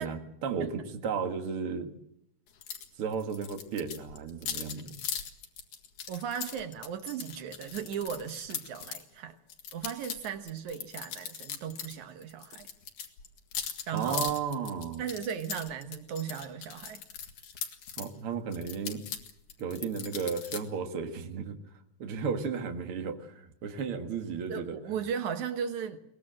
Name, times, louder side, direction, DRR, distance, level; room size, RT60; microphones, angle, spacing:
voice 1, 0.0-1.9 3.0-4.9 13.9-15.0 18.0-19.1 19.6-21.6 22.0-24.8, right 6 dB, 50° right, 5 dB, 2.4 m, -34 dB
sound 1, 2.6-2.9 3.1-9.0 9.5-12.0 12.2-18.1 18.5-20.6, left 8 dB, 85° left, 3.3 m, -40 dB
voice 2, 6.1-9.4 9.7-12.7 13.9-14.3 15.0-17.0 24.5-26.0, right 8 dB, 75° right, 8 dB, 2.5 m, -36 dB
22.5 x 19.0 x 7.6 m, 0.77 s
omnidirectional pair, 3.4 m